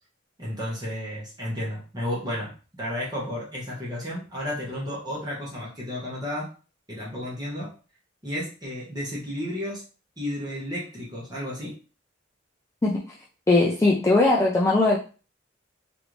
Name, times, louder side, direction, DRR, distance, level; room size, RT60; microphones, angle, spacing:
voice 1, 0.4-2.5 2.8-6.5 6.9-7.7 8.2-9.8 10.2-11.8, left 1 dB, 20° right, -6 dB, 1.0 m, -32 dB
voice 2, 13.5-15.0, left 2 dB, 15° left, -3 dB, 0.3 m, -19 dB
3.1 x 2.5 x 3.1 m, 0.35 s
head